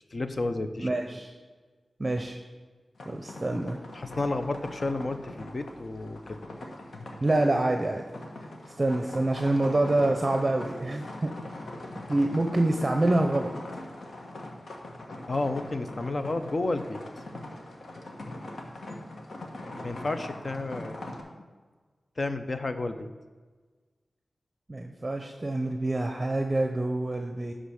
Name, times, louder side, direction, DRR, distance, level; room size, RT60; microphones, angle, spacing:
voice 1, 0.1-0.9 3.9-6.4 15.3-17.0 19.8-21.0 22.2-23.1, left 2 dB, 45° left, 9 dB, 0.7 m, -31 dB
voice 2, 0.8-1.3 2.0-2.4 3.1-3.8 7.2-8.1 8.8-11.3 12.1-13.5 24.7-27.5, right 2 dB, 35° right, 4 dB, 0.7 m, -26 dB
sound 1, 3.0-21.2, left 1 dB, 75° left, 1.3 m, -42 dB
11.0 x 3.8 x 6.4 m, 1.4 s
wide cardioid pair, 65°, 0 cm